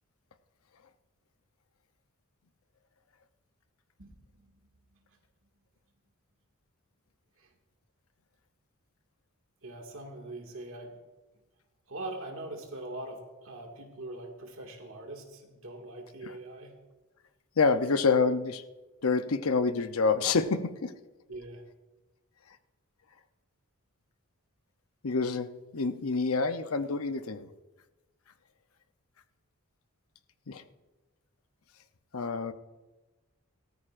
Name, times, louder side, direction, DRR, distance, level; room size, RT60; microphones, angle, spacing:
voice 1, 4.0-4.6 4.9-5.0 7.4-7.5 9.6-11.0 11.9-16.8 17.7-17.8 21.3-21.6, right 2 dB, 65° right, 2 dB, 2.1 m, -42 dB
voice 2, 17.6-18.6 19.0-20.9 25.0-25.5 25.7-27.5 30.5-30.6 32.1-32.5, left 4 dB, 75° left, 10 dB, 0.7 m, -27 dB
18.5 x 13.5 x 2.6 m, 1.1 s
head